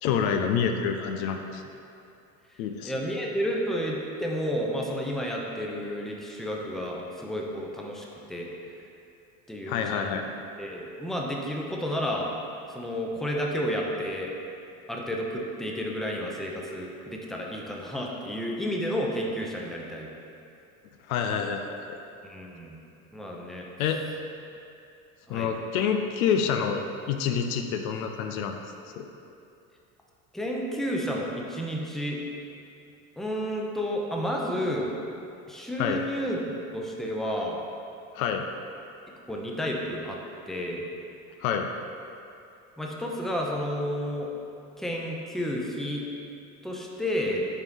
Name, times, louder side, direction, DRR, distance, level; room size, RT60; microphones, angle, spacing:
voice 1, 0.0-1.6 2.6-2.9 9.7-10.2 21.1-22.0 23.8-24.0 25.3-28.5 29.0-29.1 35.8-36.0 38.1-38.5 41.4-41.7, left 7 dB, 75° left, 5 dB, 0.6 m, -27 dB
voice 2, 2.8-8.5 9.5-10.2 10.6-12.3 12.7-14.3 14.9-20.1 22.2-22.8 23.1-23.7 25.3-25.5 30.3-32.2 33.2-35.0 35.5-36.4 36.7-37.6 39.3-40.2 40.5-40.8 42.8-44.3 44.8-46.1 46.6-47.5, equal, ahead, -2 dB, 0.7 m, -31 dB
6.8 x 4.5 x 3.6 m, 2.6 s
hypercardioid pair, 80°, 43 cm